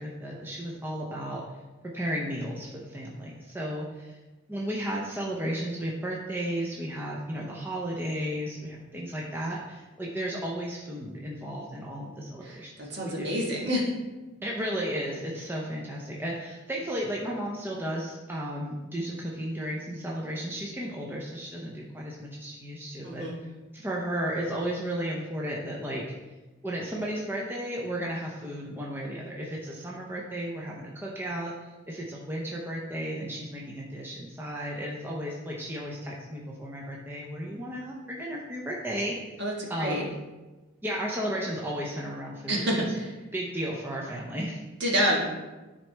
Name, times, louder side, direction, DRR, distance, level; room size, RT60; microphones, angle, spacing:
voice 1, 0.0-1.4 1.9-4.2 4.5-12.7 13.0-13.3 14.4-23.2 23.7-26.0 26.6-39.1 39.7-40.0 40.8-42.9 43.3-44.6, equal, 10° right, -3 dB, 0.7 m, -34 dB
voice 2, 12.9-13.9 15.1-15.2 23.0-23.4 39.4-39.5 39.8-40.0 42.5-43.1 44.8-45.3, equal, 55° right, -3 dB, 1.7 m, -27 dB
10.5 x 4.1 x 3.4 m, 1.2 s
head